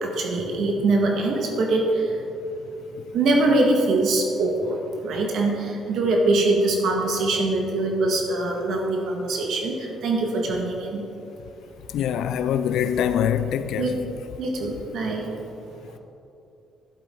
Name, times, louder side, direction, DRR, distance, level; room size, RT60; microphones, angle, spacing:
voice 1, 0.0-2.2 3.1-4.8 5.0-11.1 13.8-13.9 14.4-15.3, right 2 dB, 75° right, 1.8 m, -23 dB
voice 2, 11.9-13.9, left 9 dB, 80° left, 0.5 m, -23 dB
11.5 x 8.1 x 3.9 m
cardioid pair, 90°, 0 cm